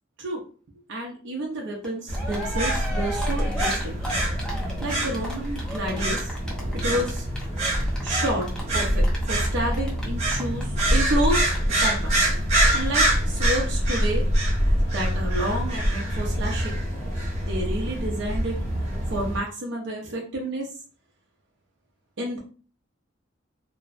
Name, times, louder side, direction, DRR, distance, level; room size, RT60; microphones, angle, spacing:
voice 1, 0.9-3.9 4.5-6.3 6.7-7.3 8.0-8.5 8.7-11.5 11.8-12.2 12.7-14.3 14.7-16.8 17.3-18.6 19.1-20.7 22.2-22.4, right 1 dB, 60° right, -1 dB, 0.5 m, -30 dB
Cheering, 1.8-1.9 2.1-11.3 11.5-11.6 11.8-11.9, equal, 5° left, 0.5 m, -35 dB
sound 1, 2.1-19.4, right 1 dB, 35° right, 0.8 m, -25 dB
2.5 x 2.0 x 2.4 m, 0.40 s
head